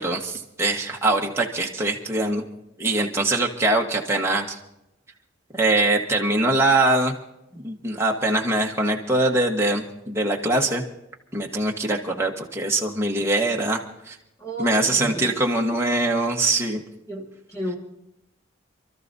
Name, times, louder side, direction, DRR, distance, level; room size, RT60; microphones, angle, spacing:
voice 1, 0.0-2.5 2.8-4.6 5.5-7.1 7.5-10.8 11.3-14.2 14.6-16.8, right 2 dB, 10° right, 0 dB, 1.2 m, -23 dB
voice 2, 14.4-15.3 17.1-17.8, right 1 dB, 15° left, 0 dB, 1.7 m, -32 dB
28.5 x 13.5 x 2.7 m, 0.87 s
head